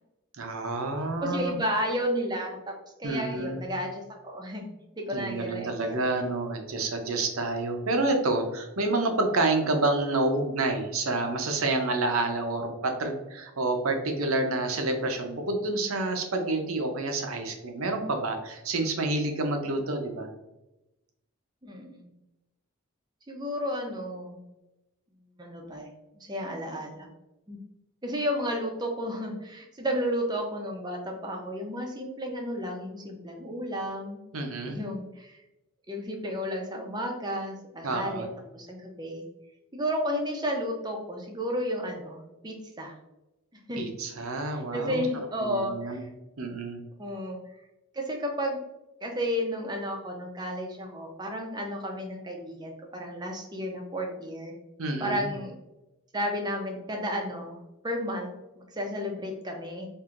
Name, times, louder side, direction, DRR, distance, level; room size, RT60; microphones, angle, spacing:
voice 1, 0.4-1.6 3.0-3.6 5.1-20.3 34.3-34.8 37.8-38.3 43.8-45.1 45.4-46.1 46.4-46.8 54.8-55.3, right 2 dB, 85° right, 4 dB, 0.7 m, -28 dB
voice 2, 1.2-2.7 3.0-4.7 4.9-6.0 21.6-22.1 23.3-24.4 25.4-25.9 26.1-27.1 27.5-27.6 28.0-34.2 34.7-35.4 35.9-38.3 38.5-39.2 39.7-42.9 43.7-43.8 44.5-46.1 47.0-47.4 47.9-48.6 49.0-54.5 55.0-55.5 56.1-57.6 57.8-59.9, equal, 20° right, 2 dB, 0.6 m, -32 dB
4.5 x 2.7 x 2.5 m, 0.96 s
head